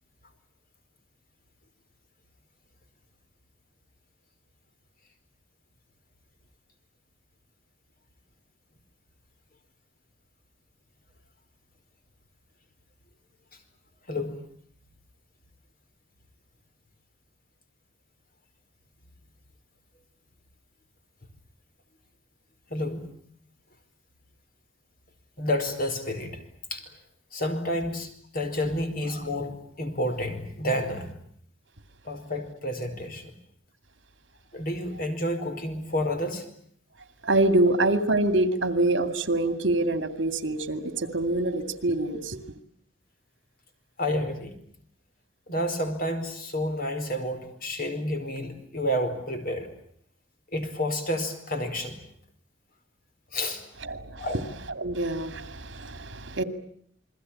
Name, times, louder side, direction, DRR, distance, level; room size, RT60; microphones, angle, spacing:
voice 1, 14.1-14.4 22.7-23.1 25.4-26.4 26.7-26.8 27.3-28.1 28.3-31.1 32.0-33.3 34.5-36.4 44.0-44.5 45.5-49.7 50.5-52.0 53.3-53.6 54.2-54.4, left 1 dB, 50° left, 4.9 m, -30 dB
voice 2, 37.2-42.4 53.8-54.3 54.7-56.4, right 2 dB, 65° right, 2.5 m, -25 dB
29.0 x 21.5 x 8.8 m
head